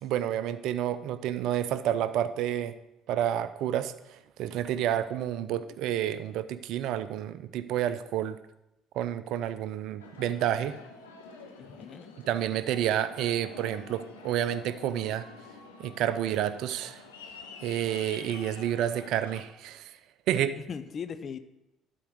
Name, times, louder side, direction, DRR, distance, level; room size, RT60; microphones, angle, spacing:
voice 1, 0.0-2.8 3.1-8.4 8.9-10.8 12.3-15.3 15.8-17.0 17.6-19.9 20.3-20.6, right 11 dB, 65° right, 13 dB, 0.5 m, -29 dB
Aircraft, 10.0-19.4, left 4 dB, 90° left, 1.0 m, -48 dB
voice 2, 11.6-12.1 20.7-21.4, left 6 dB, 45° left, 11 dB, 0.6 m, -38 dB
11.5 x 4.7 x 6.3 m, 0.91 s
hypercardioid pair, 55°, 0 cm